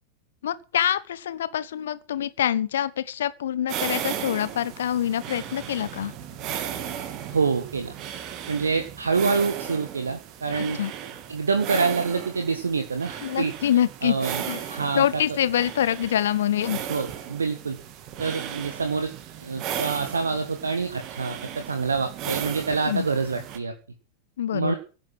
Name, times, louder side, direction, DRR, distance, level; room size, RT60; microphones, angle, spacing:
voice 1, 0.4-6.1 10.8-10.9 13.2-14.1 14.4-14.6 14.9-16.9 22.8-23.1 24.4-24.7, left 10 dB, 60° left, 1.2 m, -25 dB
sound 1, 3.7-23.6, right 9 dB, 40° right, 2.8 m, -36 dB
voice 2, 7.3-7.9 8.5-10.8 11.3-13.5 14.0-14.4 14.7-15.0 16.9-17.8 18.2-19.1 19.4-23.7 24.5-24.7, right 4 dB, 75° right, 1.8 m, -26 dB
16.5 x 9.1 x 7.8 m
figure-of-eight pair, 90°, 0 cm